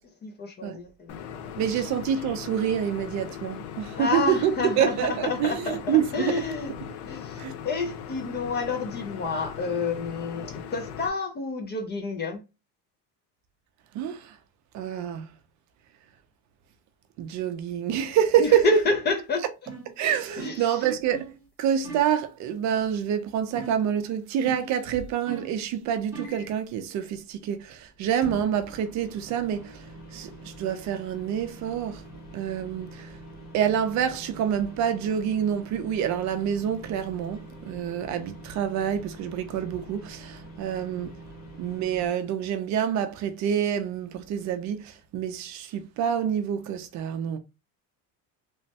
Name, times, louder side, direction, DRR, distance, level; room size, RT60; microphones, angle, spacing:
voice 1, 0.2-1.9 4.0-6.7 7.1-12.4 18.4-19.4 20.4-20.9, left 4 dB, 30° left, 0.4 m, -29 dB
sound 1, 1.1-11.1, left 8 dB, 90° left, 0.5 m, -39 dB
voice 2, 1.6-6.3 7.4-7.5 13.9-14.4 14.7-15.3 17.2-18.6 20.0-21.3 21.6-32.0 32.3-33.2 33.5-41.1 41.6-47.4, right 9 dB, 50° right, 0.4 m, -27 dB
sound 2, 19.7-19.9 20.4-20.7 21.1-21.4 21.8-22.2 23.5-23.9 24.4-24.8 25.3-25.6 26.1-26.4, right 5 dB, 5° right, 0.7 m, -38 dB
sound 3, 26.2-26.7 28.2-42.1, right 1 dB, 50° left, 1.5 m, -45 dB
3.0 x 2.1 x 2.7 m
cardioid pair, 160°, 38 cm